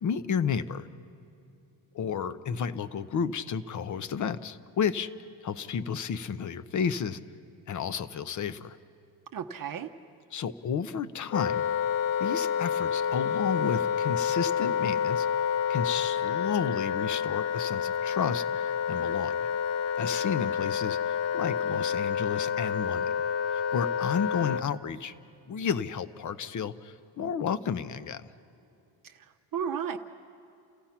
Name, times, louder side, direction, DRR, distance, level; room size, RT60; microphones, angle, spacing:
voice 1, 0.0-0.9 1.9-5.1 5.4-7.2 7.7-8.8 10.3-11.6 12.2-15.3 15.7-19.3 20.0-23.2 23.5-25.1 25.5-28.3, left 7 dB, 40° left, 14 dB, 0.7 m, -32 dB
voice 2, 9.3-9.9 29.0-30.0, right 7 dB, 45° right, 6 dB, 0.7 m, -34 dB
Wind instrument woodwind instrument, 11.3-24.7, left 8 dB, 70° left, 0.8 m, -29 dB
29.0 x 15.5 x 5.8 m, 2.7 s
cardioid pair, 130°, 47 cm